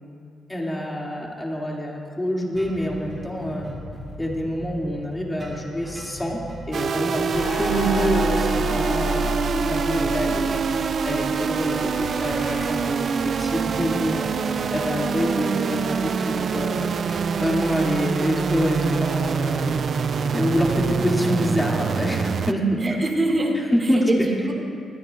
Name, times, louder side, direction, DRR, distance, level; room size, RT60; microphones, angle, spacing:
voice 1, 0.5-3.7 4.2-6.4 6.7-10.6 11.0-14.4 14.7-16.8 17.4-19.8 20.3-23.0 23.7-24.3, equal, 15° left, -2 dB, 2.5 m, -26 dB
sound 1, 2.5-20.9, equal, 15° right, 3.0 m, -40 dB
sound 2, 6.7-22.5, right 6 dB, 60° right, 0.4 m, -25 dB
sound 3, 7.3-12.7, left 1 dB, 70° left, 1.9 m, -30 dB
voice 2, 22.8-24.5, right 1 dB, 35° right, 1 dB, 2.0 m, -26 dB
24.0 x 9.4 x 2.5 m, 2.4 s
supercardioid pair, 60°, 0 cm